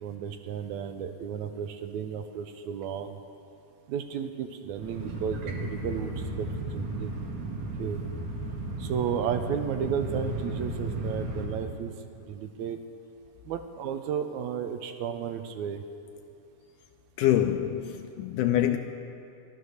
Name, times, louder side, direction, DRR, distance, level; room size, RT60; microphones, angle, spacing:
voice 1, 0.0-3.2 3.9-6.5 6.7-7.2 7.8-8.0 8.8-11.9 12.3-12.8 13.5-15.8, right 8 dB, 75° right, 1.8 m, -33 dB
sound 1, 4.8-11.5, right 1 dB, 60° right, 2.6 m, -34 dB
voice 2, 17.2-18.8, left 12 dB, 80° left, 2.0 m, -25 dB
15.0 x 12.0 x 6.5 m
omnidirectional pair, 3.9 m